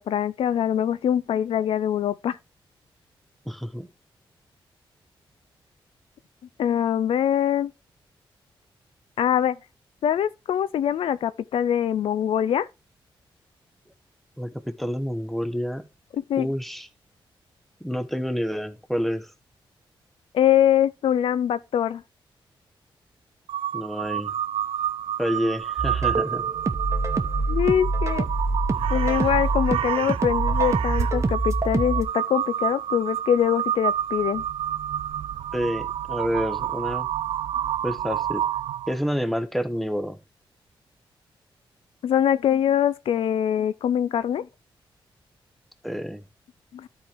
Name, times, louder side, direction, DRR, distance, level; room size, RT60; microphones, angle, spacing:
voice 1, 0.0-2.4 6.6-7.7 9.2-9.6 10.0-12.7 16.3-16.5 20.3-22.0 27.5-28.3 28.9-34.4 42.0-44.5 46.7-46.9, left 9 dB, 80° left, 0.4 m, -23 dB
voice 2, 3.5-3.9 14.4-15.9 16.4-16.9 17.8-19.3 23.7-24.3 25.2-26.5 35.5-37.1 37.8-38.4 38.9-40.2 45.8-46.2, equal, ahead, 1.0 m, -28 dB
Crow, 23.5-39.0, right 10 dB, 85° right, 0.4 m, -29 dB
sound 1, 25.8-32.0, right 2 dB, 35° right, 1.2 m, -26 dB
12.5 x 4.5 x 3.4 m
cardioid pair, 80°, 9 cm